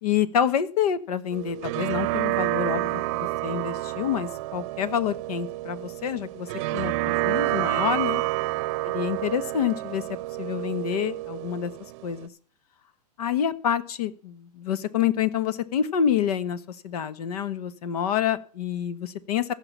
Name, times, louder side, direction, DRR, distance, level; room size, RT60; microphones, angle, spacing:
voice 1, 0.0-6.5 6.7-8.2 8.9-10.0 10.4-11.7 12.0-12.3 13.2-19.5, left 9 dB, 70° left, 16 dB, 1.2 m, -27 dB
sound 1, 1.3-12.3, right 17 dB, 45° right, 0.7 m, -29 dB
15.5 x 5.9 x 7.2 m, 0.41 s
hypercardioid pair, 135°, 21 cm